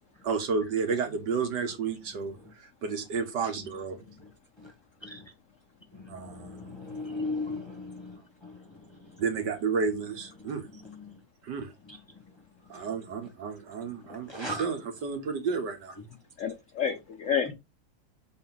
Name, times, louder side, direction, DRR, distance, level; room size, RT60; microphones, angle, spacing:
voice 1, 0.2-2.4 2.8-4.0 6.1-6.8 9.2-10.7 11.4-11.7 12.7-16.0, right 5 dB, 60° right, 1.6 m, -31 dB
voice 2, 5.0-5.3 5.9-9.2 10.4-11.2 11.9-12.0 14.3-14.7 17.4-17.5, left 2 dB, 15° left, 1.0 m, -38 dB
voice 3, 16.4-17.5, left 7 dB, 70° left, 0.7 m, -29 dB
6.4 x 4.4 x 3.9 m
omnidirectional pair, 2.2 m